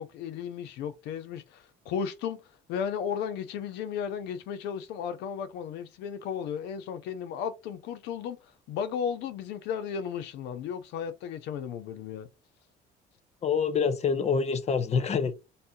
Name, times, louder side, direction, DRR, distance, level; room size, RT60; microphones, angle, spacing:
voice 1, 0.0-2.4 2.7-8.4 8.7-12.3, left 7 dB, 85° left, 0.6 m, -34 dB
voice 2, 13.4-15.3, left 6 dB, 40° left, 0.7 m, -26 dB
4.1 x 2.7 x 3.6 m
cardioid pair, 110°, 17 cm